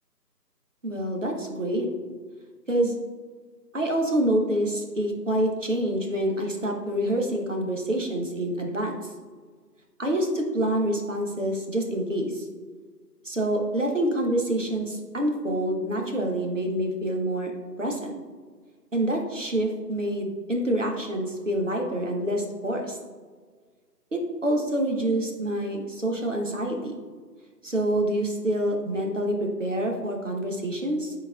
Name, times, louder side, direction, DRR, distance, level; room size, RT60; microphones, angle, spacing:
voice 1, 0.8-1.9 2.7-2.9 3.7-9.0 10.0-12.5 13.2-17.5 17.8-18.2 18.9-23.0 24.1-27.0 27.6-31.1, right 1 dB, 50° right, 1 dB, 1.0 m, -27 dB
9.9 x 4.1 x 2.3 m, 1.6 s
figure-of-eight pair, 165°, 50 cm